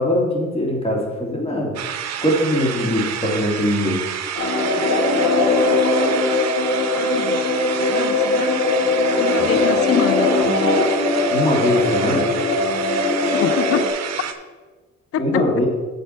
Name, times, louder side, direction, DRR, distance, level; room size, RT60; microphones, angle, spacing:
voice 1, 0.0-1.8 2.2-4.0 9.4-9.5 11.3-12.3 15.2-15.7, left 1 dB, 20° left, -1 dB, 2.9 m, -21 dB
sound 1, 1.8-14.3, right 9 dB, 60° right, 0.9 m, -29 dB
sound 2, 4.4-13.9, left 2 dB, 70° left, 2.4 m, -20 dB
voice 2, 4.4-4.8 7.0-8.6 9.2-10.8 13.3-13.9 15.1-15.4, left 9 dB, 50° left, 14 dB, 0.6 m, -27 dB
8.2 x 6.7 x 5.9 m, 1.3 s
cardioid pair, 90°, 30 cm